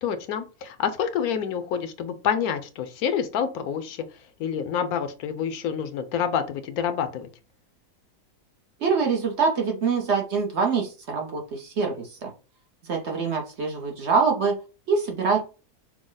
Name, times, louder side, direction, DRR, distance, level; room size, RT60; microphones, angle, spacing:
voice 1, 0.0-4.0 4.4-7.3, left 8 dB, 75° left, 11 dB, 1.0 m, -27 dB
voice 2, 8.8-12.3 12.8-14.6 14.9-15.4, right 5 dB, 55° right, 2 dB, 0.9 m, -24 dB
6.2 x 2.1 x 3.8 m, 0.34 s
omnidirectional pair, 1.7 m